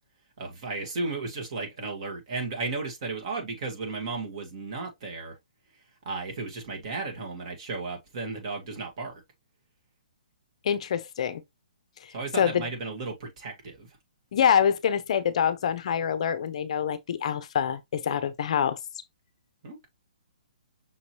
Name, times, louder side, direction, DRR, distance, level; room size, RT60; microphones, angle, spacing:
voice 1, 0.4-5.3 6.0-9.1 12.1-13.9 19.6-19.9, right 3 dB, 40° right, 1.6 m, -34 dB
voice 2, 10.6-11.4 12.0-12.1 12.4-12.6 14.3-18.8, left 8 dB, 50° left, 0.5 m, -25 dB
5.9 x 2.9 x 2.9 m
hypercardioid pair, 165°, 4 cm